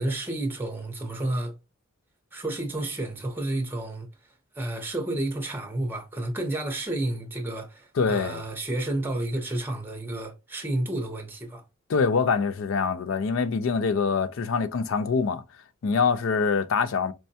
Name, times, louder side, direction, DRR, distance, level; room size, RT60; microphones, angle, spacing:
voice 1, 0.0-1.5 2.3-4.1 4.5-11.6, right 1 dB, 10° right, 0.7 m, -30 dB
voice 2, 8.0-8.4 11.9-15.4 15.8-17.1, left 5 dB, 65° left, 0.4 m, -24 dB
4.5 x 2.1 x 2.7 m
head